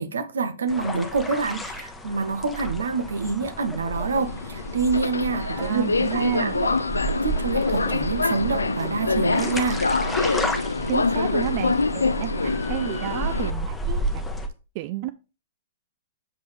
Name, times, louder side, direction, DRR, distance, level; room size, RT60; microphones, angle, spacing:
voice 1, 0.0-5.9 6.1-6.7 7.2-9.8, right 4 dB, 75° right, 0.9 m, -27 dB
sound 1, 0.7-14.5, right 1 dB, 10° left, 1.0 m, -31 dB
Subway metro underground, 3.9-13.5, left 4 dB, 85° left, 0.3 m, -26 dB
voice 2, 5.3-6.6 10.9-14.2 14.8-15.1, right 16 dB, 45° right, 0.4 m, -31 dB
7.4 x 5.2 x 3.3 m
figure-of-eight pair, 110°, 0 cm